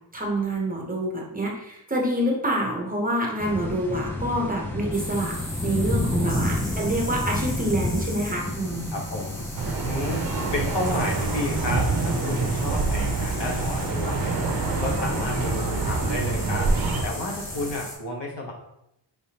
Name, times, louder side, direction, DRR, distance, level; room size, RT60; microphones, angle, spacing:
voice 1, 0.1-5.3 5.6-9.0, right 1 dB, 20° right, -2 dB, 0.8 m, -27 dB
sound 1, 3.4-17.7, left 1 dB, 5° left, 0.3 m, -32 dB
sound 2, 4.9-18.0, left 1 dB, 35° left, 1.4 m, -39 dB
voice 2, 6.5-6.9 8.9-9.5 9.8-10.2 10.5-14.3 14.6-16.7 17.0-18.5, left 1 dB, 65° left, -1 dB, 1.1 m, -31 dB
sound 3, 9.6-17.0, right 3 dB, 50° right, 0.6 m, -26 dB
4.9 x 3.4 x 2.8 m, 0.82 s
wide cardioid pair, 170°, 45 cm